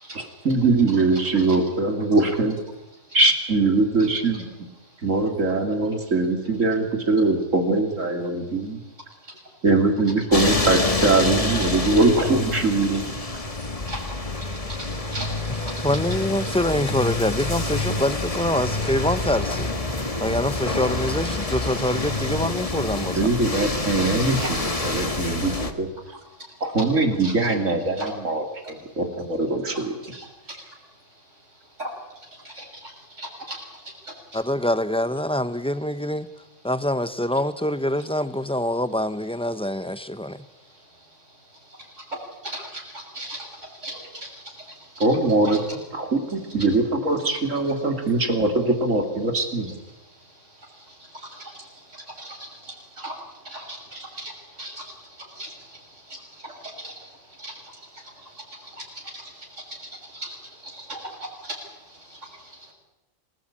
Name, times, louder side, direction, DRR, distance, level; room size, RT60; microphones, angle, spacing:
voice 1, 0.1-2.6 3.1-4.5 5.0-8.8 9.6-13.1 23.1-25.9 26.6-29.9 45.0-45.6 45.9-49.7, right 3 dB, 85° right, 3.4 m, -22 dB
sound 1, 10.3-25.7, left 2 dB, 30° left, 1.7 m, -27 dB
voice 2, 14.8-15.2 27.2-27.6 28.0-28.1 29.7-29.8 30.1-30.2 31.8-31.9 32.6-32.7 33.2-33.6 42.4-43.4 43.8-44.3 45.4-45.6 52.2-52.4 53.0-53.1 53.5-54.3 54.6-54.7 55.4-55.5 56.8-56.9 57.4-57.5 60.1-60.3 60.7-61.0 61.4-61.5, right 1 dB, 70° right, 6.6 m, -35 dB
voice 3, 15.8-19.7 20.2-23.3 34.3-36.3 36.6-40.4, left 1 dB, 5° left, 0.7 m, -25 dB
26.5 x 18.0 x 8.8 m
omnidirectional pair, 1.3 m